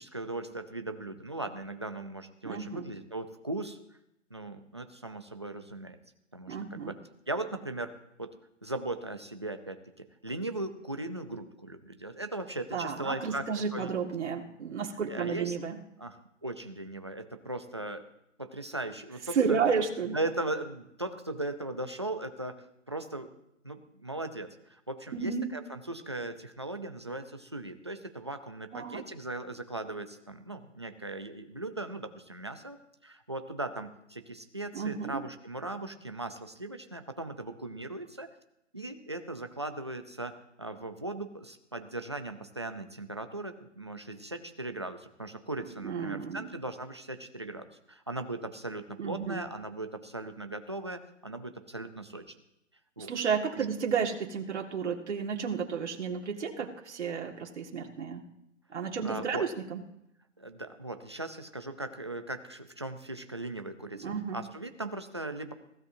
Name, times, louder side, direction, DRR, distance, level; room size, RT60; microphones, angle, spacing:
voice 1, 0.0-3.8 4.3-6.0 6.3-7.0 7.3-7.9 8.2-8.3 8.6-13.9 15.1-15.6 16.0-18.0 18.4-19.6 20.1-23.3 23.6-32.8 33.0-38.3 38.7-52.3 53.0-53.1 53.6-53.7 59.0-59.5 60.4-65.5, right 2 dB, 25° right, 7 dB, 0.5 m, -38 dB
voice 2, 2.4-2.9 6.5-6.9 12.7-15.8 19.3-20.2 25.1-25.5 28.7-29.0 34.7-35.2 45.6-46.5 49.0-49.4 53.0-58.2 58.7-59.8 64.0-64.4, right 6 dB, 65° right, 1 dB, 2.0 m, -32 dB
22.5 x 16.0 x 2.7 m, 0.82 s
hypercardioid pair, 180°, 38 cm